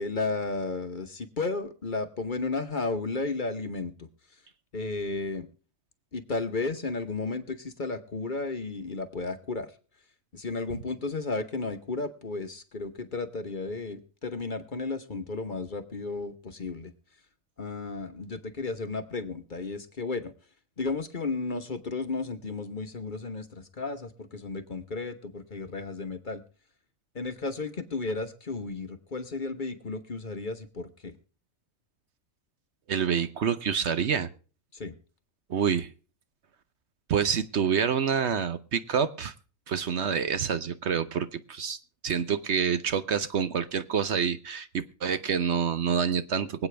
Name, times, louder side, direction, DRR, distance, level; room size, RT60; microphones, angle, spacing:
voice 1, 0.0-4.1 4.7-5.5 6.1-9.7 10.3-16.9 17.6-20.3 20.8-26.4 27.1-31.1 34.7-34.9, left 3 dB, 40° left, 9 dB, 1.2 m, -33 dB
voice 2, 32.9-34.3 35.5-35.9 37.1-39.3 39.7-41.8 42.0-46.7, right 7 dB, 60° right, 12 dB, 1.0 m, -27 dB
24.5 x 8.6 x 3.3 m, 0.38 s
omnidirectional pair, 1.4 m